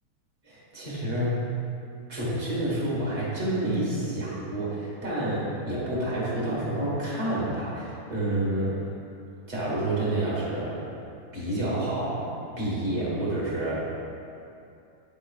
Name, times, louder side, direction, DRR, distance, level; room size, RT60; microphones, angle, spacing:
voice 1, 0.4-1.5 2.1-8.8 9.5-10.8 11.3-13.8, right 1 dB, 35° right, -7 dB, 1.5 m, -29 dB
8.6 x 4.8 x 2.4 m, 2.6 s
omnidirectional pair, 2.3 m